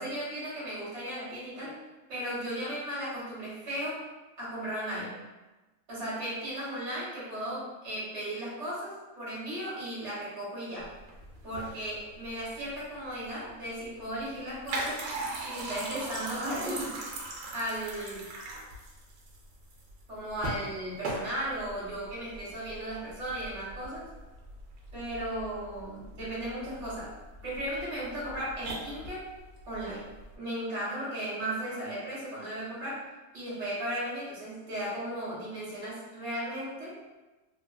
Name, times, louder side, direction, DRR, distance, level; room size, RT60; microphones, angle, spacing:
voice 1, 0.0-1.8 2.1-4.0 4.4-5.2 5.9-10.9 11.4-15.0 15.4-17.1 17.5-18.2 20.1-24.1 24.9-27.2 27.4-29.3 29.7-30.1 30.4-33.0 33.3-37.0, right 1 dB, 50° right, -8 dB, 1.5 m, -36 dB
sound 1, 10.8-30.4, right 2 dB, 80° right, 1.1 m, -41 dB
3.1 x 2.4 x 2.4 m, 1.1 s
omnidirectional pair, 1.6 m